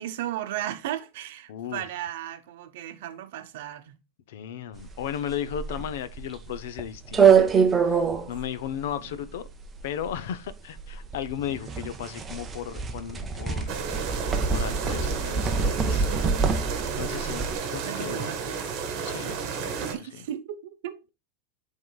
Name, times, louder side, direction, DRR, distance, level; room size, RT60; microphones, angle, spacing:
voice 1, 0.0-3.9 8.7-9.1 11.5-12.0 16.8-17.6 17.9-18.4 19.7-21.1, right 12 dB, 60° right, 0.7 m, -36 dB
voice 2, 1.5-1.9 4.3-9.5 9.8-14.2 14.5-16.1 17.0-18.4 19.1-20.3, left 9 dB, 70° left, 0.6 m, -36 dB
sound 1, 4.8-17.6, right 6 dB, 15° right, 0.5 m, -25 dB
sound 2, 13.7-19.9, right 6 dB, 35° right, 1.2 m, -32 dB
11.0 x 3.7 x 2.3 m
supercardioid pair, 170°, 0 cm